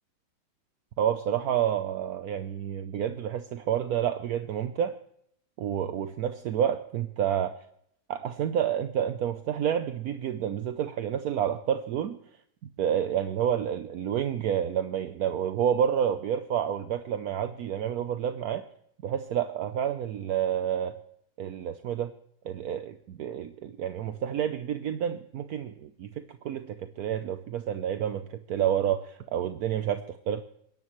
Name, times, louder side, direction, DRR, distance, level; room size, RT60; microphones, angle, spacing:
voice 1, 1.0-5.0 5.6-7.6 8.1-12.2 12.8-18.6 19.0-21.0 21.4-22.1 22.4-30.4, right 9 dB, 65° right, 9 dB, 0.9 m, -29 dB
29.0 x 11.0 x 3.1 m, 0.70 s
omnidirectional pair, 2.2 m